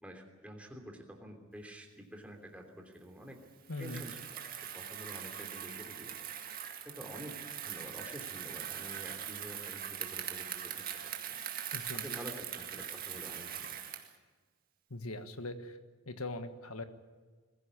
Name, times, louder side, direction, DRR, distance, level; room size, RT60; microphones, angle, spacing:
voice 1, 0.0-3.4 3.8-6.1 6.8-7.4 7.6-11.4 11.9-13.8, equal, 5° right, 2 dB, 3.1 m, -49 dB
Bicycle, 3.6-14.2, right 9 dB, 40° right, 2.0 m, -42 dB
voice 2, 3.7-4.0 11.7-12.0 14.9-15.8 16.0-16.8, left 2 dB, 80° left, 9 dB, 1.5 m, -41 dB
22.0 x 15.5 x 9.9 m, 1.4 s
head